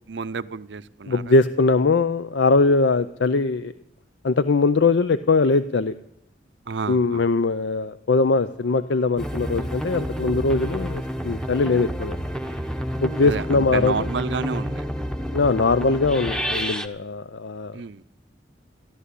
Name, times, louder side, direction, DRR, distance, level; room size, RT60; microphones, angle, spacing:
voice 1, 0.0-1.3 6.7-7.3 13.2-14.8 17.7-18.0, right 4 dB, 70° right, 15 dB, 0.6 m, -30 dB
voice 2, 1.1-3.7 4.2-5.9 6.9-12.2 13.0-14.1 15.3-17.8, left 3 dB, 75° left, 13 dB, 0.5 m, -21 dB
Wind instrument woodwind instrument, 8.5-13.3, left 3 dB, 40° left, 2.9 m, -54 dB
sound 1, 9.2-16.9, equal, 5° left, 0.8 m, -29 dB
14.0 x 12.5 x 8.2 m, 0.75 s
head